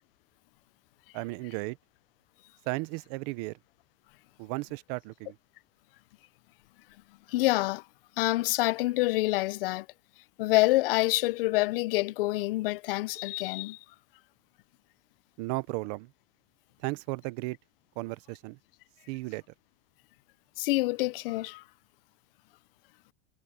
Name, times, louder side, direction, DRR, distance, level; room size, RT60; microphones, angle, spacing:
voice 1, 1.1-1.8 2.7-3.6 4.4-5.4 15.4-16.1 16.8-17.6 18.0-18.6 19.1-19.4, right 22 dB, 45° right, 0.7 m, -35 dB
voice 2, 7.3-7.8 8.2-9.9 10.4-13.8 20.6-21.6, left 20 dB, 65° left, 0.5 m, -27 dB
supercardioid pair, 175°, 30 cm